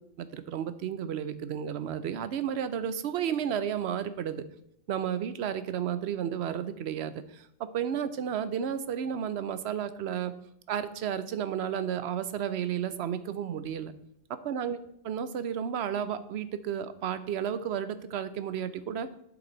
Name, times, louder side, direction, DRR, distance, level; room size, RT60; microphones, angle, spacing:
voice 1, 0.2-4.4 4.9-10.3 10.7-13.9 14.4-14.8 15.0-19.1, right 8 dB, 65° right, 12 dB, 0.8 m, -32 dB
11.5 x 4.7 x 3.9 m, 0.72 s
omnidirectional pair, 1.4 m